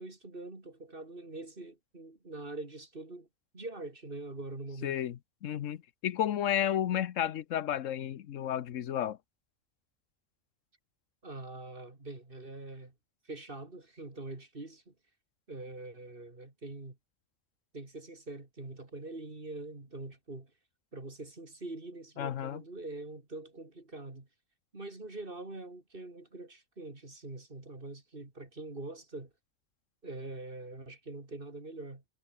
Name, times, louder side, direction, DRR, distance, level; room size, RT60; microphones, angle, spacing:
voice 1, 0.0-3.3 3.5-5.0 11.2-12.9 13.2-14.9 15.5-17.0 17.7-20.5 20.9-24.3 24.7-29.3 30.0-32.0, right 2 dB, 45° right, 3.7 m, -44 dB
voice 2, 4.8-9.2 22.2-22.6, left 10 dB, 75° left, 1.2 m, -32 dB
omnidirectional pair, 1.3 m